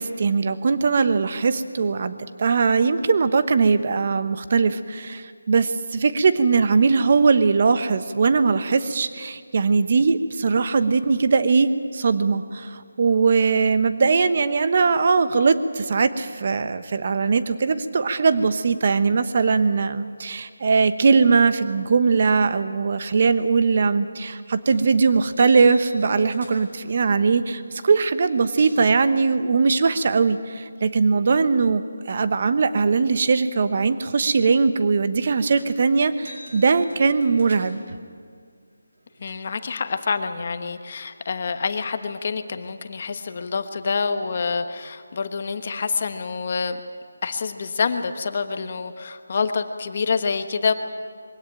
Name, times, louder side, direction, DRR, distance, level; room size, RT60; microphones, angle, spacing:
voice 1, 0.0-37.8, right 4 dB, 40° right, 12 dB, 1.0 m, -20 dB
sound 1, 24.7-24.9 25.2-26.8 27.8-27.9 28.2-28.9 35.6-35.8 36.1-37.9 38.7-39.3, left 1 dB, 60° right, 6.4 m, -45 dB
voice 2, 39.2-46.8 47.2-50.7, left 5 dB, 35° left, 8 dB, 1.2 m, -27 dB
22.5 x 17.0 x 9.0 m, 2.1 s
figure-of-eight pair, 170°, 0 cm